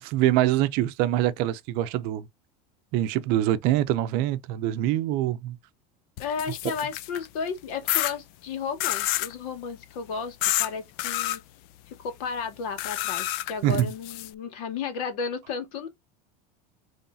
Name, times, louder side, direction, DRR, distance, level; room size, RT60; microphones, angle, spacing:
voice 1, 0.0-2.3 2.9-5.6 13.6-13.9, right 13 dB, 50° right, 0.6 m, -24 dB
voice 2, 6.2-11.4 11.9-15.9, left 6 dB, 70° left, 2.1 m, -33 dB
sound 1, 6.2-7.3 7.9-8.1 8.8-9.3 10.4-10.7 11.0-11.4 12.8-14.3, left 15 dB, 50° left, 0.5 m, -28 dB
5.5 x 3.2 x 2.7 m
supercardioid pair, 155°, 19 cm